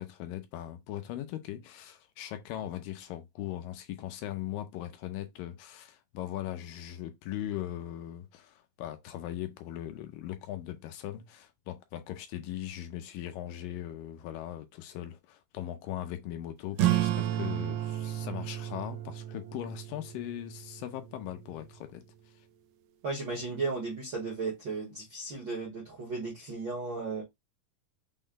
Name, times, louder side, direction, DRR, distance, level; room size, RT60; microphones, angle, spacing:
voice 1, 0.0-22.0, left 12 dB, 80° left, 2.4 m, -39 dB
sound 1, 16.7-21.8, right 13 dB, 80° right, 2.2 m, -33 dB
voice 2, 23.0-27.2, right 3 dB, 55° right, 1.3 m, -35 dB
6.3 x 2.2 x 3.7 m
omnidirectional pair, 4.1 m